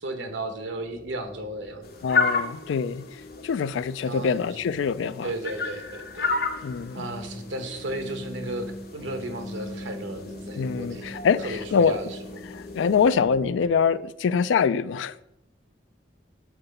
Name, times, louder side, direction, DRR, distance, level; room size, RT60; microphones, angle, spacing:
voice 1, 0.0-1.9 4.0-4.7 5.2-6.3 6.9-12.2, right 1 dB, 85° right, 1.0 m, -34 dB
sound 1, 0.7-13.7, left 1 dB, 35° left, 1.2 m, -42 dB
sound 2, 1.8-13.1, left 4 dB, 55° left, 0.8 m, -34 dB
voice 2, 2.0-3.1 3.4-5.3 6.6-7.0 10.6-12.0 12.5-15.2, left 6 dB, 85° left, 0.3 m, -24 dB
7.3 x 3.9 x 5.4 m
head